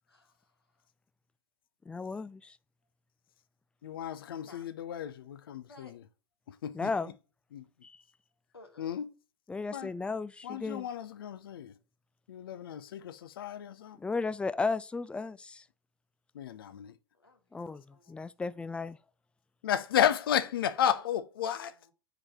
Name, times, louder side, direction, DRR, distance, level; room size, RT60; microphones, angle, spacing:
voice 1, 0.1-0.6 4.4-4.7 5.6-5.9 8.5-8.9 13.9-14.0 17.1-18.2 20.9-21.1 21.4-21.9, left 2 dB, 90° left, 1.8 m, -57 dB
voice 2, 1.9-2.5 6.7-7.1 7.8-7.9 9.5-10.9 14.0-15.6 17.5-17.8 18.1-19.0, left 4 dB, 10° left, 0.3 m, -34 dB
voice 3, 3.8-5.9 6.6-6.9 7.5-7.6 8.8-9.1 9.7-9.9 10.4-11.7 12.3-14.0 16.3-16.9 19.6-21.7, left 10 dB, 70° left, 0.6 m, -32 dB
4.9 x 4.8 x 5.7 m
figure-of-eight pair, 95°, 12 cm